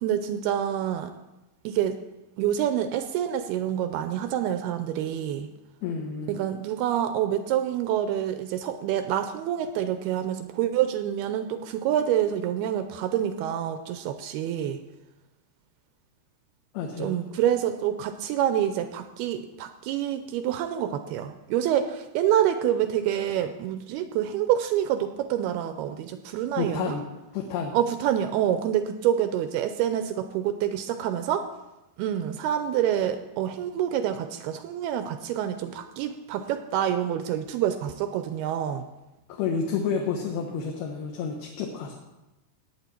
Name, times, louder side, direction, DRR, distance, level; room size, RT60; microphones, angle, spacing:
voice 1, 0.0-1.1 1.6-2.0 2.4-5.5 6.3-14.8 17.0-26.9 27.7-31.5 32.0-38.9, right 10 dB, 85° right, 9 dB, 2.4 m, -27 dB
voice 2, 5.8-6.4 16.7-17.2 26.6-27.0 27.3-27.7 39.3-41.9, left 6 dB, 70° left, 1 dB, 2.9 m, -30 dB
17.5 x 8.9 x 4.4 m, 1.0 s
omnidirectional pair, 4.9 m